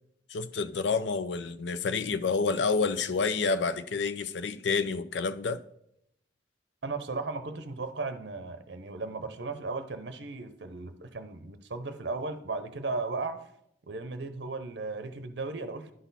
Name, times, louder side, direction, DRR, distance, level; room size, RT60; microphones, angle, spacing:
voice 1, 0.3-5.6, left 4 dB, 70° left, 0.4 m, -29 dB
voice 2, 6.8-13.5 13.9-15.9, right 3 dB, 65° right, 0.7 m, -36 dB
11.0 x 4.0 x 4.1 m
head